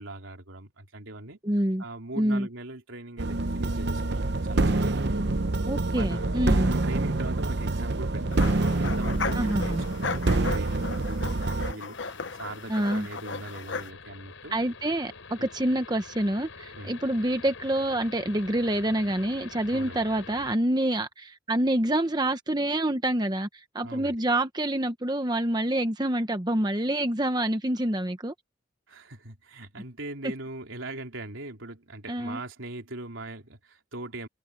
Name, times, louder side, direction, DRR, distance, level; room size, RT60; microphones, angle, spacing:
voice 1, 0.0-1.4 1.8-5.0 5.9-14.8 15.4-15.5 16.7-17.0 19.7-20.0 23.8-24.2 28.9-34.3, right 2 dB, 75° right, 3.3 m, -41 dB
voice 2, 1.4-1.8 2.2-2.5 5.7-6.7 9.3-9.8 12.7-13.1 14.5-28.3 32.1-32.4, right 1 dB, 20° right, 1.0 m, -27 dB
sound 1, 3.2-11.7, right 2 dB, 55° right, 0.8 m, -26 dB
sound 2, 8.3-13.9, left 4 dB, 65° left, 1.1 m, -36 dB
sound 3, 11.9-20.5, left 4 dB, 80° left, 4.4 m, -46 dB
head